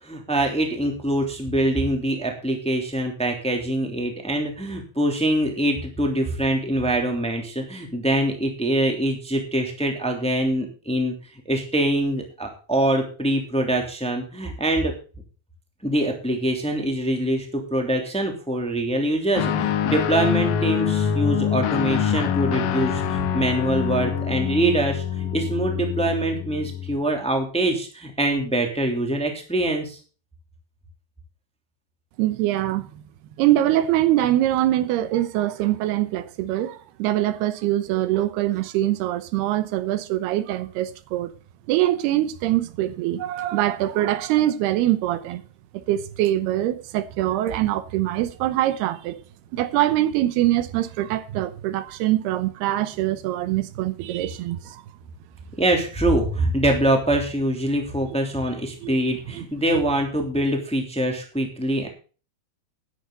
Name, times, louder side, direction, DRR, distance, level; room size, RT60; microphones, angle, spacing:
voice 1, 0.0-11.1 11.4-14.9 15.8-30.0 55.6-61.9, right 1 dB, ahead, 2.1 m, -24 dB
Guitar, 19.3-27.0, left 8 dB, 70° left, 2.5 m, -25 dB
voice 2, 32.2-32.9 33.4-41.4 41.7-45.4 45.7-49.2 49.5-54.8 58.8-59.0 59.3-59.4 59.7-59.8, right 14 dB, 85° right, 2.9 m, -23 dB
13.0 x 10.5 x 4.0 m
omnidirectional pair, 4.6 m